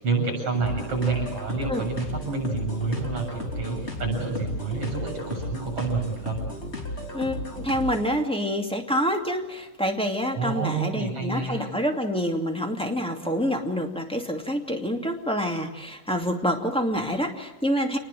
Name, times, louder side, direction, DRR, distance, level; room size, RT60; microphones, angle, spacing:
voice 1, 0.0-6.4 10.4-11.7, right 4 dB, 50° right, 3 dB, 8.2 m, -28 dB
sound 1, 0.5-8.2, left 1 dB, 20° left, 3.4 m, -34 dB
voice 2, 7.1-18.0, equal, ahead, 3 dB, 1.9 m, -27 dB
28.0 x 20.0 x 7.7 m, 1.1 s
omnidirectional pair, 3.5 m